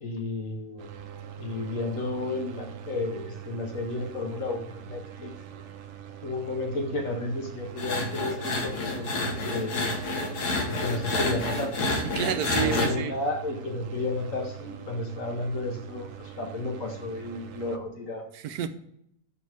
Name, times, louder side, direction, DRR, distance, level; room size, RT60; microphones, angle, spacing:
voice 1, 0.0-0.9 1.4-5.6 6.2-9.8 10.7-11.7 12.5-18.2, left 2 dB, 55° left, 2 dB, 1.7 m, -32 dB
sound 1, 0.8-17.8, right 8 dB, 60° right, 0.8 m, -43 dB
sound 2, 7.8-12.9, left 2 dB, 80° left, 1.9 m, -29 dB
voice 2, 12.1-13.1 18.3-18.7, right 10 dB, 75° right, 9 dB, 1.1 m, -29 dB
6.3 x 6.2 x 4.8 m, 0.73 s
omnidirectional pair, 1.7 m